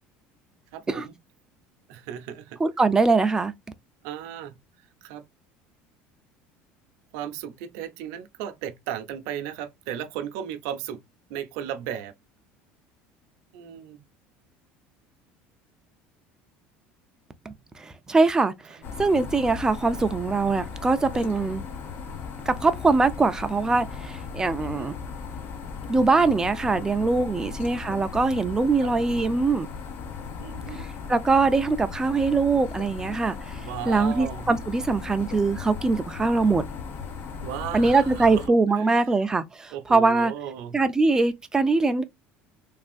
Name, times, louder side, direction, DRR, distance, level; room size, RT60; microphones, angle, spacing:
voice 1, 0.7-1.2 1.9-2.6 4.0-5.2 7.1-11.0 11.3-12.1 13.5-14.0 18.7-18.8 21.3-21.6 24.6-24.9 27.4-27.8 28.8-28.9 30.4-30.9 33.6-34.5 37.4-39.1 39.7-40.8, right 10 dB, 80° right, 0.6 m, -36 dB
voice 2, 2.6-3.5 17.5-17.6 17.8-21.6 22.5-24.9 25.9-29.7 31.1-33.6 33.9-36.6 37.7-40.3 40.7-42.0, right 3 dB, 15° right, 0.4 m, -22 dB
sound 1, 18.8-38.5, left 5 dB, 50° left, 0.7 m, -37 dB
3.3 x 2.4 x 2.4 m
cardioid pair, 130°, 5 cm